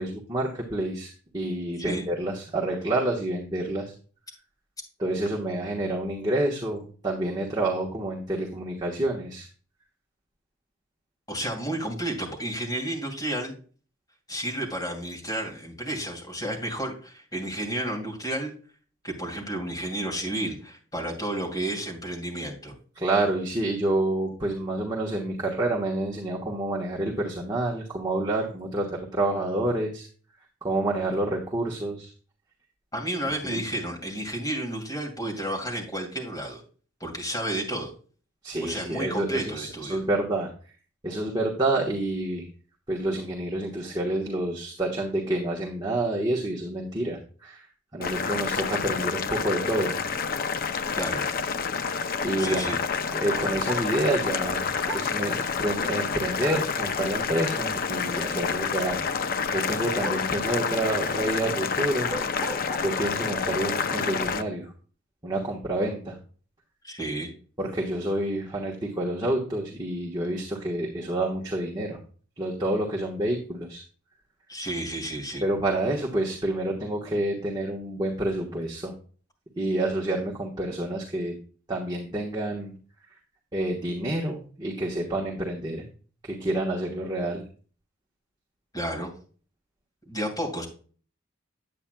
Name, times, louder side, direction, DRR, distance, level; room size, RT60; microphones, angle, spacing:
voice 1, 0.0-3.9 5.0-9.5 23.0-30.1 30.6-32.1 33.4-33.6 38.4-40.5 41.0-42.5 42.9-47.7 47.9-49.9 52.2-52.6 53.1-62.1 62.8-64.7 65.2-66.2 67.6-72.0 72.4-73.8 75.4-78.9 79.6-81.3 81.7-82.7 83.5-85.8 86.2-87.4, right 1 dB, 20° right, -3 dB, 1.3 m, -28 dB
voice 2, 11.3-13.5 14.3-18.5 19.0-22.7 32.9-36.6 37.0-37.9 38.6-40.0 51.0-51.3 52.4-52.8 66.8-67.3 74.5-75.4 88.7-89.1 90.1-90.7, right 1 dB, 20° left, 0 dB, 2.6 m, -31 dB
Boiling, 48.0-64.4, left 5 dB, 45° left, 0.5 m, -28 dB
sound 1, 53.6-53.9 54.8-55.1 56.4-56.7 60.0-60.3 61.9-62.8, equal, 5° right, 1.4 m, -35 dB
8.8 x 8.7 x 2.3 m, 0.40 s
head